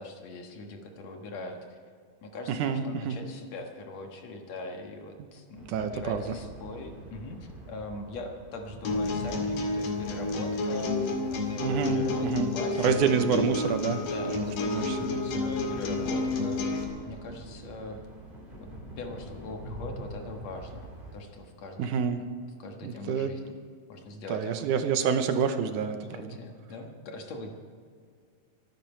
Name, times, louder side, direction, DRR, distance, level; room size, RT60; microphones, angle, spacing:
voice 1, 0.0-1.8 2.2-7.4 7.7-13.3 14.0-18.0 18.6-18.7 19.0-22.0 22.6-23.5 23.9-24.7 26.1-27.5, left 2 dB, 60° left, 3 dB, 2.4 m, -41 dB
voice 2, 2.5-3.2 5.7-6.2 11.6-12.5 12.8-14.0 14.3-15.2 21.8-22.2 22.8-23.3 24.3-26.4, right 6 dB, 75° right, 8 dB, 2.3 m, -28 dB
sound 1, 5.5-21.2, right 1 dB, 15° right, 3.1 m, -45 dB
sound 2, 8.9-16.8, left 2 dB, 75° left, 3.7 m, -30 dB
24.0 x 11.0 x 4.5 m, 2.1 s
omnidirectional pair, 3.7 m